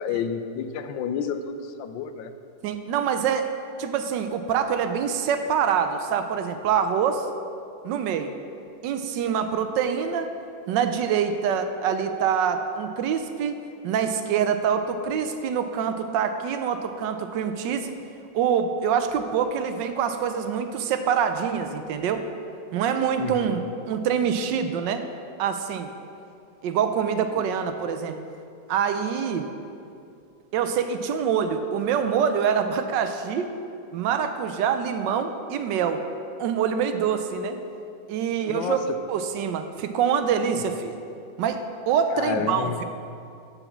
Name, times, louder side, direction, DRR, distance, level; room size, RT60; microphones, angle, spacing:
voice 1, 0.0-2.4 23.2-23.7 27.3-27.4 38.5-39.0 40.5-40.6 42.1-42.8, left 7 dB, 85° left, 9 dB, 1.3 m, -30 dB
voice 2, 2.6-3.5 3.8-7.3 7.8-8.3 8.8-10.3 10.7-18.0 18.3-22.2 22.7-25.0 25.4-25.9 26.6-28.2 28.7-29.5 30.5-33.5 33.9-36.0 36.4-37.6 38.1-38.8 39.1-41.0 41.4-42.8, right 7 dB, 80° right, 8 dB, 1.3 m, -25 dB
7.0 x 7.0 x 7.2 m, 2.5 s
omnidirectional pair, 2.0 m